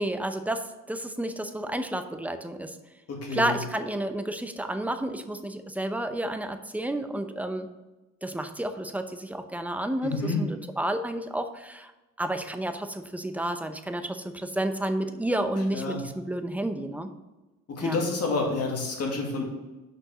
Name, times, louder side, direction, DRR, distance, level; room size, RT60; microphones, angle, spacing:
voice 1, 0.0-2.8 3.3-7.7 8.2-11.9 12.2-17.1 17.8-18.0, right 1 dB, 5° right, 8 dB, 0.7 m, -31 dB
voice 2, 3.1-3.6 10.0-10.4 15.7-16.0 17.7-19.4, left 3 dB, 55° left, 0 dB, 2.4 m, -29 dB
6.5 x 5.3 x 6.0 m, 1.1 s
cardioid pair, 90°, 30 cm